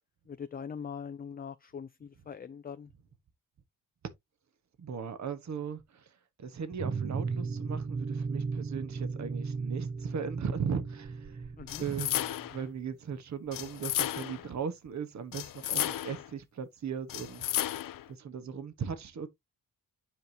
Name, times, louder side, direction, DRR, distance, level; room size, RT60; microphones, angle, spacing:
voice 1, 0.3-2.9 11.6-11.8, left 7 dB, 25° left, 0.5 m, -42 dB
voice 2, 4.8-6.1 6.4-11.5 11.8-17.7 18.1-19.3, right 6 dB, 55° right, 1.4 m, -38 dB
sound 1, 6.8-12.7, right 4 dB, 30° right, 0.7 m, -36 dB
sound 2, 11.7-12.6 13.5-14.5 15.3-16.3 17.1-18.1, left 12 dB, 70° left, 0.7 m, -33 dB
9.2 x 5.2 x 2.8 m
cardioid pair, 110°, 35 cm